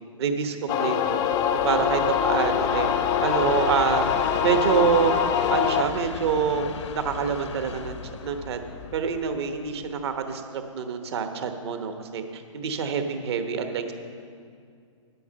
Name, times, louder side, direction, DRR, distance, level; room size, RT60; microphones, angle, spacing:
voice 1, 0.2-1.2 1.6-2.9 3.2-4.0 4.4-5.1 5.5-7.9 8.2-8.6 8.9-13.9, right 6 dB, 55° right, 7 dB, 1.1 m, -26 dB
sound 1, 0.7-5.8, left 8 dB, 20° left, 0.4 m, -24 dB
Train, 1.0-10.2, left 6 dB, 60° left, 0.6 m, -37 dB
9.2 x 8.4 x 6.7 m, 2.3 s
hypercardioid pair, 130°, 17 cm